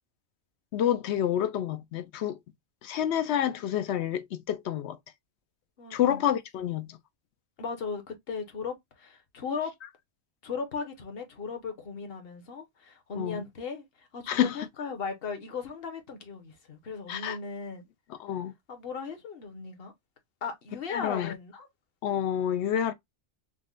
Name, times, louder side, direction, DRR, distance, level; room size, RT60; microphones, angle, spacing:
voice 1, 0.7-2.4 2.8-5.0 5.9-7.0 13.1-13.4 14.3-14.7 17.1-17.4 18.2-18.5 20.9-21.3 22.0-22.9, left 10 dB, 85° left, 0.9 m, -28 dB
voice 2, 5.8-6.2 7.6-9.7 10.4-17.8 18.7-19.9 20.4-21.7, left 5 dB, 65° left, 1.1 m, -37 dB
5.1 x 2.1 x 2.4 m
omnidirectional pair, 1.1 m